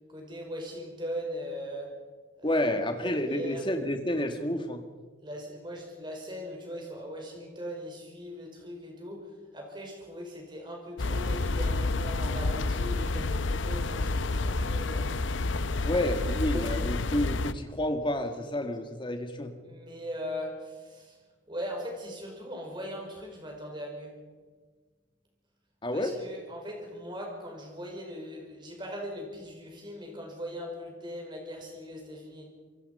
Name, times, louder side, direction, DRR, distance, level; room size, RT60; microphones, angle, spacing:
voice 1, 0.1-1.9 2.4-2.7 3.0-3.6 5.2-9.3 9.5-15.6 15.9-16.0 16.4-16.8 19.6-21.2 21.5-24.2 25.9-32.5, equal, 25° right, 1 dB, 5.3 m, -40 dB
voice 2, 2.4-4.8 15.8-19.5 25.8-26.1, left 1 dB, 25° left, 6 dB, 2.1 m, -30 dB
sound 1, 11.0-17.5, left 3 dB, 70° left, 0.7 m, -29 dB
26.0 x 22.5 x 5.7 m, 1.4 s
head